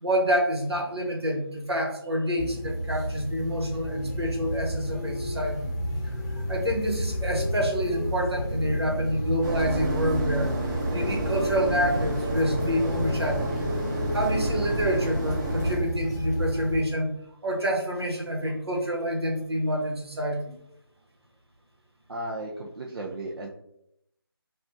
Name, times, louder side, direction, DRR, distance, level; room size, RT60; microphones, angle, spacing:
voice 1, 0.0-5.7 6.5-10.5 10.9-13.5 14.1-17.1 17.4-20.5, equal, 90° right, 0 dB, 1.1 m, -27 dB
sound 1, 2.4-16.8, equal, 40° left, 0.6 m, -31 dB
sound 2, 9.4-15.8, right 1 dB, 50° right, 1.3 m, -30 dB
voice 2, 22.1-23.5, right 1 dB, 70° right, -1 dB, 0.5 m, -35 dB
3.6 x 2.4 x 2.5 m, 0.76 s
figure-of-eight pair, 160°, 13 cm